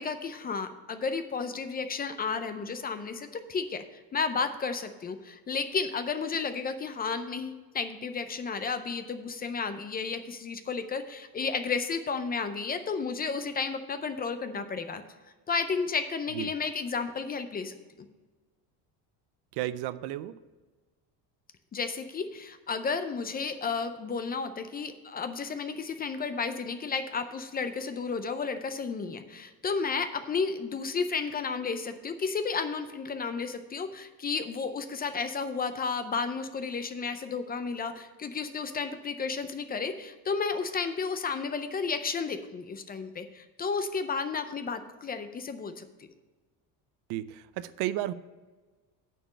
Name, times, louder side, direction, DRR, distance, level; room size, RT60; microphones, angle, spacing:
voice 1, 0.0-15.0 15.5-18.1 21.7-45.8, left 5 dB, 25° left, 9 dB, 0.5 m, -32 dB
voice 2, 19.6-20.3 47.1-48.1, right 14 dB, 70° right, 15 dB, 0.6 m, -33 dB
9.0 x 4.5 x 7.1 m, 1.3 s
cardioid pair, 145°, 41 cm